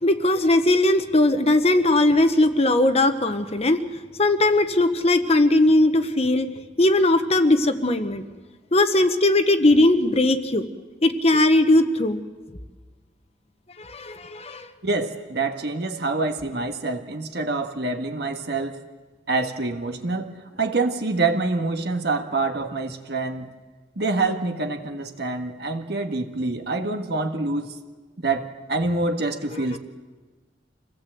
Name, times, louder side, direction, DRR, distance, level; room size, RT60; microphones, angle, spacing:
voice 1, 0.0-3.8 4.2-6.5 6.8-8.2 8.7-10.7 11.0-12.2 13.8-14.7 29.5-29.8, left 2 dB, 35° left, 9 dB, 1.1 m, -19 dB
voice 2, 14.8-18.8 19.3-20.3 20.6-23.5 23.9-27.7 28.2-29.8, right 3 dB, 65° right, 4 dB, 1.7 m, -26 dB
26.0 x 17.5 x 7.8 m, 1.3 s
head